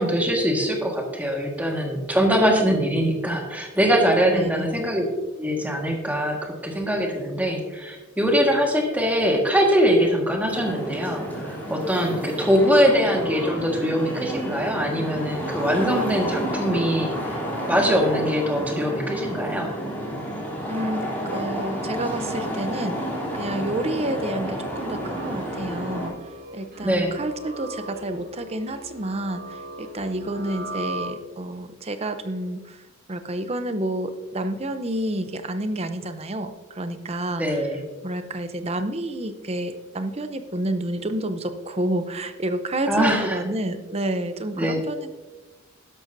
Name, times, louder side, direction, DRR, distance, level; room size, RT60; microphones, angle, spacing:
voice 1, 0.0-5.0 5.4-19.7 26.8-27.1 37.4-37.8 42.8-43.4 44.5-44.8, equal, 10° right, 1 dB, 1.6 m, -22 dB
voice 2, 4.3-4.7 20.7-26.2 26.5-32.8 33.1-37.7 38.0-45.1, right 1 dB, 30° right, 9 dB, 0.7 m, -29 dB
sound 1, 10.5-26.1, equal, 10° left, 3.4 m, -31 dB
sound 2, 23.4-31.6, equal, 45° right, 2.0 m, -39 dB
12.5 x 11.0 x 2.7 m, 1.2 s
head